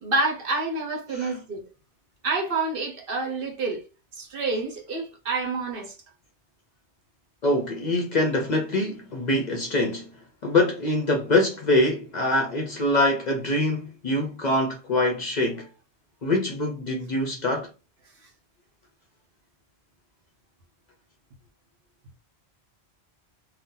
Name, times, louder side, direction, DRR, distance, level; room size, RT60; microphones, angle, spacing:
voice 1, 0.0-1.6 2.2-3.8 4.1-5.9, right 3 dB, 55° right, 1.0 m, -28 dB
voice 2, 7.4-10.1 10.4-15.7 16.2-17.7, left 1 dB, 50° left, 0.6 m, -24 dB
2.7 x 2.1 x 3.7 m
omnidirectional pair, 1.1 m